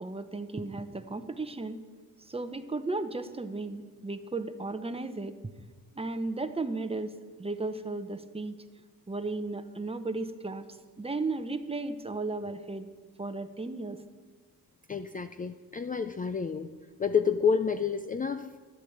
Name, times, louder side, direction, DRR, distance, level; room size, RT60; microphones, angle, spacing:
voice 1, 0.0-1.8 2.3-5.4 5.9-7.1 7.4-8.6 9.1-10.6 11.0-12.9 13.2-14.0, right 3 dB, 15° right, 10 dB, 0.8 m, -35 dB
voice 2, 14.9-16.7 17.0-18.6, left 6 dB, 25° left, 9 dB, 0.4 m, -29 dB
12.5 x 8.4 x 7.9 m, 1.4 s
cardioid pair, 100°, 36 cm